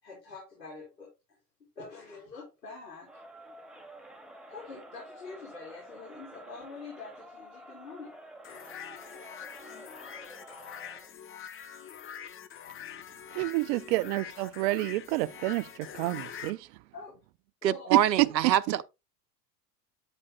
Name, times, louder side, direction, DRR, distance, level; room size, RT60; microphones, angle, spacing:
voice 1, 0.0-1.4 1.7-3.2 4.5-8.2 16.9-17.2 17.6-17.9, left 4 dB, 80° left, 4.6 m, -45 dB
Crowd, 3.0-11.2, right 1 dB, ahead, 1.7 m, -50 dB
sound 1, 8.4-16.5, left 8 dB, 25° left, 0.9 m, -44 dB
voice 2, 13.4-16.6 18.4-18.5, right 19 dB, 45° right, 0.5 m, -29 dB
voice 3, 17.6-18.8, right 11 dB, 80° right, 0.7 m, -25 dB
8.8 x 8.5 x 2.3 m
figure-of-eight pair, 80°, 50 cm